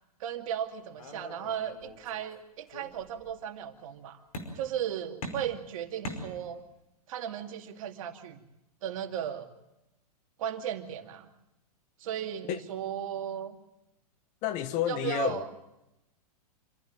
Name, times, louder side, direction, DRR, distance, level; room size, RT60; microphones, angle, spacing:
voice 1, 0.2-4.2 4.5-6.6 7.1-8.4 8.8-9.5 10.4-11.3 12.0-13.6 14.9-15.6, right 9 dB, 55° right, 2.5 m, -36 dB
sound 1, 1.0-2.3 2.7-3.4 4.3-4.9 5.2-6.8, left 1 dB, 65° left, 5.1 m, -42 dB
voice 2, 14.4-15.6, left 10 dB, 35° left, 1.3 m, -30 dB
26.5 x 15.0 x 8.9 m
hypercardioid pair, 125°, 20 cm